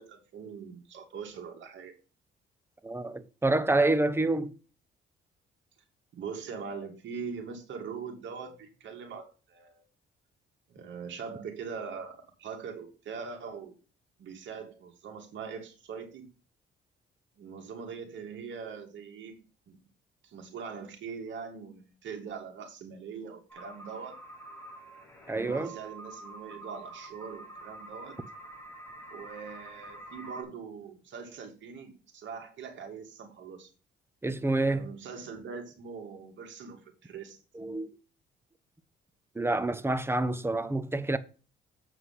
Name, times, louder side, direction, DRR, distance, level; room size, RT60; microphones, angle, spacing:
voice 1, 0.0-2.0 6.1-9.8 10.7-13.7 14.2-16.3 17.4-19.8 20.2-24.2 25.3-28.2 29.1-33.7 34.7-37.4, right 6 dB, 70° right, 2.7 m, -42 dB
voice 2, 2.8-4.5 25.3-25.8 34.2-34.9 37.5-37.9 39.3-41.2, right 2 dB, 10° right, 0.9 m, -28 dB
sound 1, 23.5-30.4, right 2 dB, 10° left, 4.0 m, -47 dB
8.0 x 4.9 x 5.7 m
cardioid pair, 90°, 20 cm